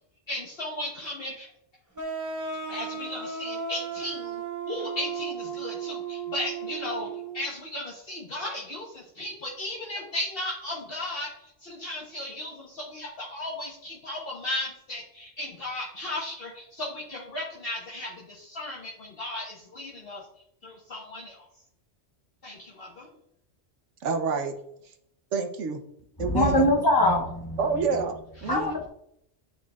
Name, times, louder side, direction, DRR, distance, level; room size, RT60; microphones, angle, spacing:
voice 1, 0.3-1.5 2.7-4.4 4.7-20.2 20.6-21.4 22.4-23.1, left 1 dB, 55° left, -4 dB, 1.3 m, -35 dB
sound 1, 2.0-7.5, right 5 dB, 20° right, 0.6 m, -35 dB
voice 2, 24.0-24.5 25.3-25.8 26.2-26.6 27.6-28.8, right 5 dB, 80° right, 6 dB, 1.2 m, -28 dB
voice 3, 26.2-27.6 28.5-28.9, left 1 dB, 25° left, -3 dB, 0.7 m, -23 dB
9.5 x 4.7 x 2.4 m, 0.75 s
omnidirectional pair, 1.2 m